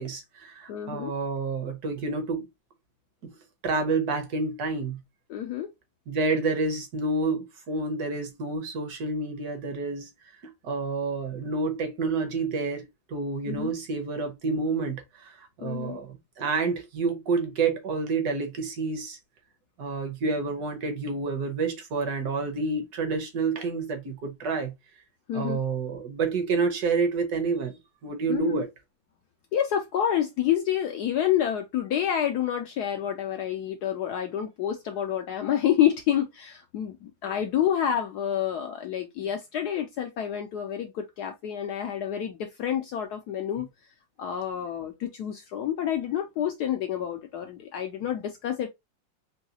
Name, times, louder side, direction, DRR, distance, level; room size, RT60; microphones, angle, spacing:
voice 1, 0.0-2.5 3.2-3.3 3.6-5.0 6.1-10.1 10.4-19.2 19.8-24.7 25.3-28.7, right 4 dB, 60° right, 1.1 m, -29 dB
voice 2, 0.7-1.1 5.3-5.7 13.5-13.7 15.6-16.0 25.3-25.6 28.3-28.6 29.5-43.7 44.2-48.7, left 10 dB, 80° left, 0.9 m, -28 dB
3.9 x 2.7 x 2.7 m
omnidirectional pair, 2.2 m